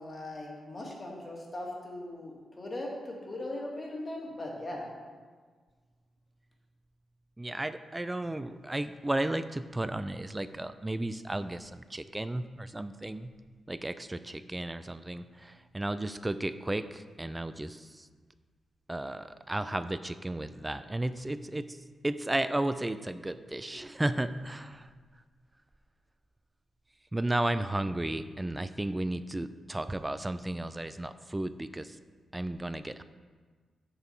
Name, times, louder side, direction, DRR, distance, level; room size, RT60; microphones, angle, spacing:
voice 1, 0.0-4.9, left 1 dB, 30° left, -2 dB, 1.9 m, -39 dB
voice 2, 7.4-13.3 13.7-17.8 18.9-21.7 22.0-24.9 27.1-32.0 32.3-33.0, right 1 dB, 15° right, 12 dB, 0.4 m, -34 dB
7.0 x 6.9 x 4.4 m, 1.5 s
cardioid pair, 90°, 0 cm